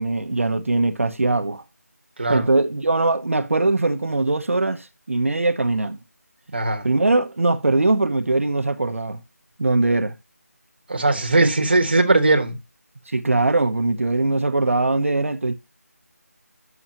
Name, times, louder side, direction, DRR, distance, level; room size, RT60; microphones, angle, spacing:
voice 1, 0.0-1.6 2.3-6.0 6.8-9.2 9.6-10.1 11.4-11.5 13.1-15.5, right 2 dB, 55° right, 0.9 m, -21 dB
voice 2, 6.5-6.9 10.9-12.6, right 2 dB, 35° right, 1.4 m, -19 dB
10.0 x 7.0 x 2.9 m
figure-of-eight pair, 175°, 9 cm